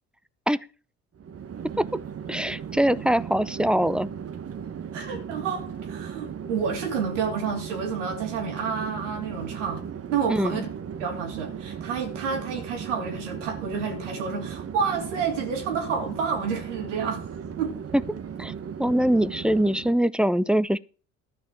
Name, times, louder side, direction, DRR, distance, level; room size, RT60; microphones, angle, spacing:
Chatter / Fixed-wing aircraft airplane, 1.1-20.1, right 7 dB, 40° right, 1.3 m, -37 dB
voice 1, 2.3-4.1 10.3-10.6 17.9-18.0 18.4-18.5 18.8-20.8, equal, 5° right, 0.6 m, -23 dB
voice 2, 4.9-9.8 10.1-10.7 11.0-17.3 17.6-17.8, right 6 dB, 85° right, 3.0 m, -29 dB
12.5 x 5.8 x 7.3 m
hypercardioid pair, 60°, 35 cm